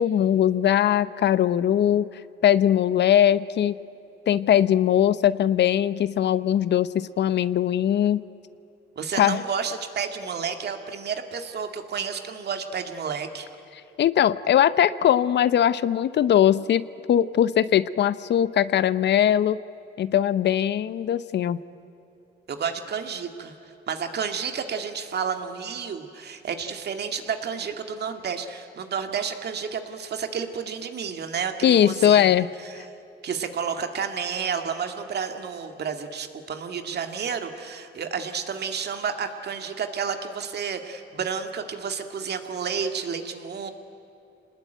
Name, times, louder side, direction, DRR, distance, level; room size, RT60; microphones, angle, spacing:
voice 1, 0.0-2.1 2.4-3.8 4.3-8.2 9.1-9.4 14.0-19.6 20.0-21.6 31.6-32.5, left 10 dB, 60° left, 16 dB, 0.7 m, -20 dB
voice 2, 9.0-13.5 22.5-23.5 23.9-32.8 33.2-43.7, right 6 dB, 55° right, 6 dB, 2.2 m, -31 dB
26.5 x 20.0 x 9.1 m, 2.8 s
cardioid pair, 90°, 20 cm